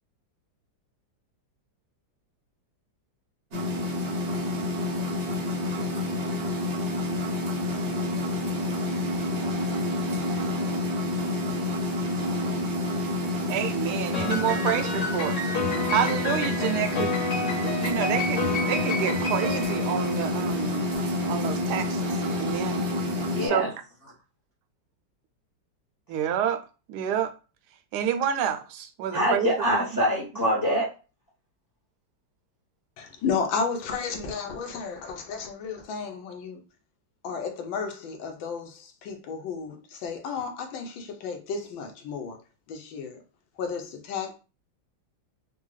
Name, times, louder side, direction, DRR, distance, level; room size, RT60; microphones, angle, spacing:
sound 1, 3.5-23.5, left 1 dB, 50° right, 0.7 m, -28 dB
voice 1, 13.5-15.5 15.9-22.9 23.4-23.7 26.1-26.6 26.9-27.3 27.9-29.8, right 9 dB, 75° right, 1.0 m, -29 dB
Piano, 14.1-20.6, left 3 dB, 45° left, 1.4 m, -31 dB
voice 2, 23.3-23.7 29.1-30.9, equal, 25° left, 0.4 m, -24 dB
voice 3, 33.0-36.6 37.2-42.4 42.7-43.2 43.6-44.3, left 5 dB, 85° left, 1.5 m, -33 dB
3.8 x 2.3 x 3.1 m
omnidirectional pair, 2.1 m